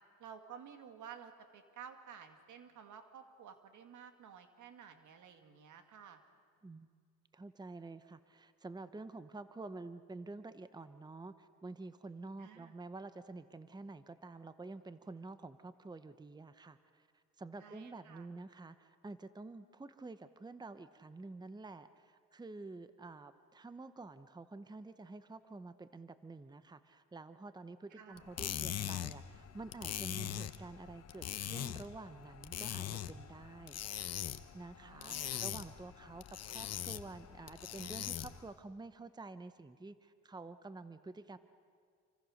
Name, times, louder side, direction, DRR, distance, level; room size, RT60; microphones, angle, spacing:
voice 1, 0.2-6.2 12.4-12.7 17.6-18.3 28.0-28.2 34.8-35.5, right 7 dB, 75° right, 7 dB, 2.2 m, -53 dB
voice 2, 7.3-33.8 34.5-41.4, right 3 dB, 15° right, 12 dB, 0.9 m, -49 dB
sound 1, 28.2-38.5, left 10 dB, 55° left, 1.0 m, -42 dB
28.0 x 25.0 x 6.5 m, 2.1 s
cardioid pair, 90°, 30 cm